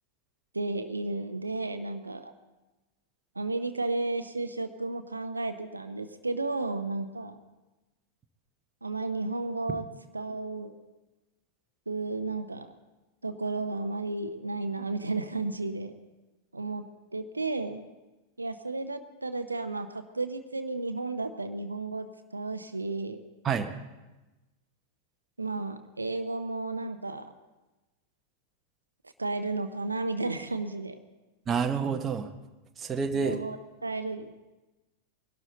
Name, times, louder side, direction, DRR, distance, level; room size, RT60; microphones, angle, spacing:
voice 1, 0.5-2.3 3.4-7.3 8.8-9.8 10.1-10.8 11.9-12.7 13.2-15.9 16.5-17.9 18.4-23.2 25.4-27.3 29.2-31.0 33.2-33.6 33.8-34.3, right 3 dB, 80° right, 9 dB, 0.7 m, -33 dB
voice 2, 31.5-32.3 32.8-33.4, right 6 dB, 25° right, 7 dB, 1.0 m, -28 dB
21.5 x 12.0 x 3.9 m, 1.1 s
figure-of-eight pair, 90°, 0 cm